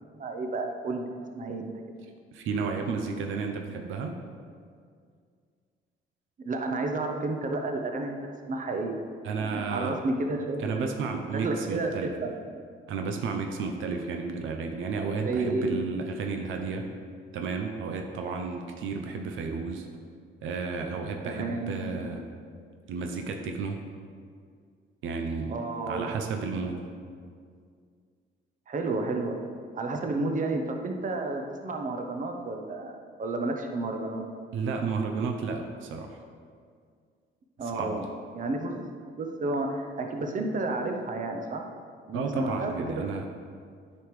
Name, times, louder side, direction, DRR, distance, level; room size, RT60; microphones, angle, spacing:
voice 1, 0.2-1.1 1.3-1.7 6.4-8.2 8.5-9.0 9.4-10.9 11.3-12.4 15.2-15.9 21.2-22.1 25.5-26.2 28.7-29.4 29.7-34.2 37.6-38.1 38.3-41.7 42.1-42.7 43.1-43.2, right 2 dB, 40° right, 3 dB, 0.8 m, -31 dB
voice 2, 2.3-4.2 9.2-10.0 10.6-12.1 12.9-16.9 17.3-19.9 20.4-22.3 22.9-23.8 25.0-25.6 25.9-26.8 34.5-36.2 37.6-38.0 42.1-43.2, right 4 dB, 80° right, 3 dB, 0.6 m, -32 dB
9.8 x 5.2 x 3.2 m, 2.1 s
cardioid pair, 90°, 20 cm